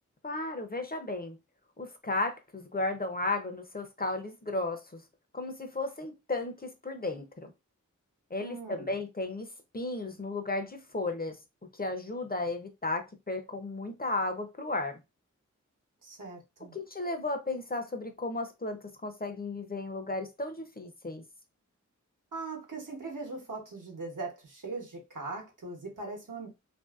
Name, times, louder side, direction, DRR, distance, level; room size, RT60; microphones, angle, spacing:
voice 1, 0.2-1.4 1.8-5.0 5.3-7.5 8.3-9.5 9.7-11.4 11.7-15.0 16.6-21.2, left 2 dB, 30° left, 0.5 m, -34 dB
voice 2, 8.4-8.9 16.0-16.7 22.3-26.5, right 3 dB, 80° right, 1.0 m, -40 dB
2.6 x 2.5 x 2.3 m
wide cardioid pair, 50°, 31 cm